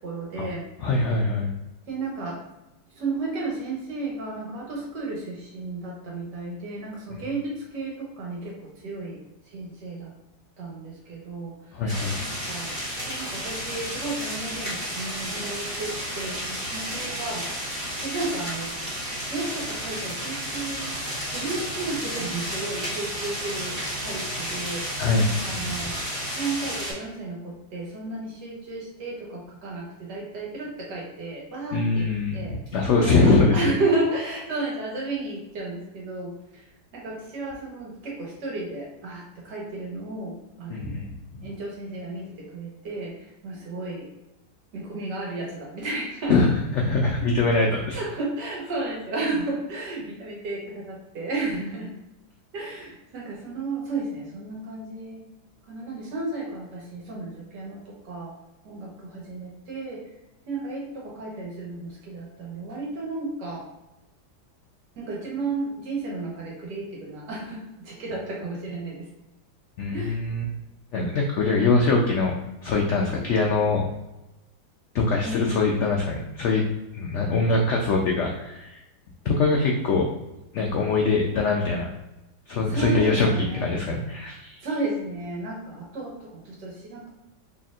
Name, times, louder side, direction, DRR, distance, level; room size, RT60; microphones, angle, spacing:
voice 1, 0.0-0.6 1.9-2.4 2.9-9.2 9.5-10.1 10.6-11.5 12.2-12.7 13.1-17.4 18.0-18.7 19.3-21.0 21.3-26.0 26.3-32.6 33.0-36.3 36.9-41.1 41.4-44.1 44.7-46.5 47.9-51.9 52.5-55.2 55.7-57.8 58.0-58.3 58.6-60.0 60.5-63.6 65.0-69.1 69.9-70.2 75.2-75.7 82.7-83.8 84.6-87.1, right 2 dB, 90° right, -3 dB, 1.7 m, -33 dB
voice 2, 0.8-1.5 7.1-7.2 11.7-12.2 25.0-25.3 25.6-25.9 31.7-33.6 40.7-41.5 46.3-48.0 69.8-70.4 70.9-72.3 72.6-73.8 74.9-76.6 76.9-78.8 79.3-80.1 80.5-81.9 82.5-83.3 83.5-84.6, left 3 dB, 90° left, 0 dB, 0.6 m, -23 dB
sound 1, 11.9-26.9, equal, 35° right, 1.7 m, -32 dB
4.2 x 3.4 x 2.4 m, 0.96 s
omnidirectional pair, 1.8 m